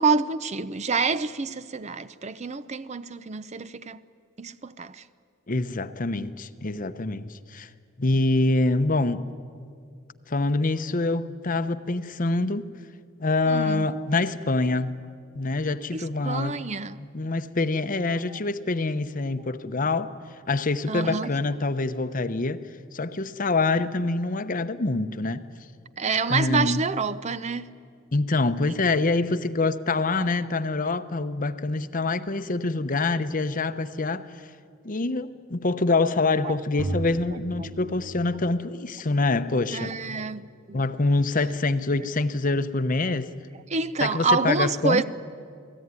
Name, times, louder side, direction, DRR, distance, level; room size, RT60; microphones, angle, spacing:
voice 1, 0.0-4.0 4.4-5.0 13.5-13.9 15.9-17.0 20.9-21.3 26.0-27.7 36.4-36.5 39.7-40.8 43.7-45.0, right 4 dB, 35° right, 0.6 m, -27 dB
voice 2, 5.5-7.7 8.0-9.2 10.3-12.7 13.2-15.0 15.3-16.6 17.0-20.1 20.5-22.6 22.9-25.4 26.3-26.8 28.1-34.3 34.8-39.9 40.7-43.3 44.0-45.0, left 3 dB, 40° left, 0.8 m, -25 dB
sound 1, 36.8-38.6, right 2 dB, 75° right, 2.1 m, -34 dB
28.5 x 19.0 x 9.7 m
head